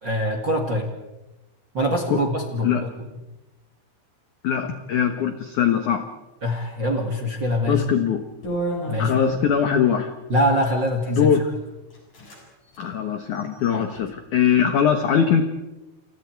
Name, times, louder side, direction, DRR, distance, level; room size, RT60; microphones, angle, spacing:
voice 1, 0.0-0.9 1.7-3.1 6.4-7.9 8.9-9.2 10.3-11.3 13.7-14.0, equal, 40° right, 4 dB, 1.8 m, -24 dB
voice 2, 4.4-6.1 7.7-8.2 9.0-10.1 11.1-11.4 12.8-15.5, left 8 dB, 80° left, 7 dB, 1.7 m, -21 dB
sound 1, 8.4-9.6 10.5-11.0 11.6-11.7 11.9-12.4 12.7-12.8 13.3-14.0, right 1 dB, 40° left, 8.0 m, -32 dB
29.5 x 29.0 x 4.7 m, 1.0 s
omnidirectional pair, 5.7 m